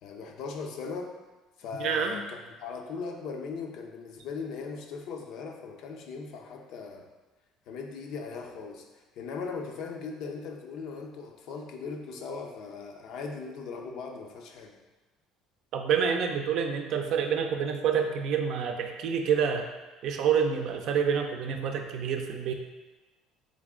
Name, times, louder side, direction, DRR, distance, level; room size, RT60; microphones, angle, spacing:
voice 1, 0.0-1.2 1.6-7.1 7.7-14.8, left 5 dB, 65° left, 3 dB, 0.6 m, -39 dB
voice 2, 1.8-2.2 15.7-19.7 20.0-22.5, right 7 dB, 65° right, 4 dB, 0.5 m, -27 dB
3.9 x 3.1 x 3.7 m, 1.2 s
supercardioid pair, 105°, 0 cm